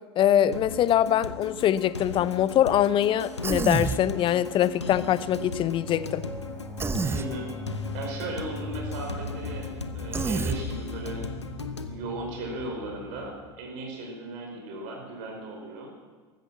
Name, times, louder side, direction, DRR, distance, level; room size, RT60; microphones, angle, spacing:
voice 1, 0.2-6.2, left 11 dB, 35° left, 17 dB, 0.6 m, -23 dB
sound 1, 0.5-11.9, left 4 dB, 90° left, 0.9 m, -38 dB
sound 2, 3.1-13.5, left 1 dB, 5° left, 3.2 m, -40 dB
Human voice, 3.4-4.0 6.8-7.3 10.1-10.6, right 4 dB, 15° right, 0.8 m, -27 dB
voice 2, 7.1-7.5 7.9-11.2 11.8-15.9, right 2 dB, 60° right, 1 dB, 5.1 m, -37 dB
14.5 x 12.0 x 7.5 m, 1.4 s
figure-of-eight pair, 75°, 14 cm